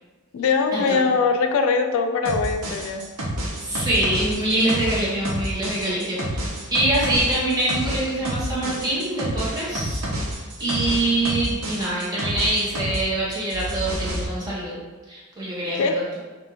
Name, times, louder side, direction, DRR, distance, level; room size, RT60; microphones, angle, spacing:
voice 1, 0.3-3.1 15.8-16.2, left 4 dB, 70° left, 6 dB, 0.3 m, -22 dB
sound 1, 2.3-13.0 13.3-14.3, equal, 75° right, 0.8 m, -29 dB
voice 2, 3.6-6.4 6.7-10.0 10.6-14.7 15.1-16.2, right 1 dB, 20° right, -7 dB, 1.2 m, -24 dB
5.5 x 2.5 x 2.9 m, 1.3 s
head